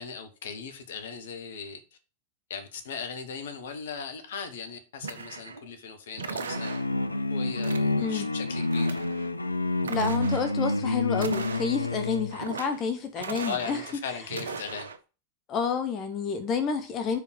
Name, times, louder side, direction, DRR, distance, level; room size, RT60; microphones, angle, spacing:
voice 1, 0.0-1.8 2.5-6.8 7.3-9.0 13.4-14.9, left 6 dB, 60° left, 1.3 m, -38 dB
sound 1, 5.0-5.7 6.2-7.1 7.6-8.2 8.5-9.3 9.8-10.5 11.1-12.0 12.3-12.9 13.2-14.0 14.2-15.0, right 5 dB, 70° right, 0.8 m, -38 dB
sound 2, 6.5-12.4, left 2 dB, 85° left, 0.4 m, -28 dB
voice 2, 9.9-13.8 15.5-17.2, left 6 dB, 30° left, 1.1 m, -29 dB
5.2 x 4.9 x 6.2 m
figure-of-eight pair, 90°, 0 cm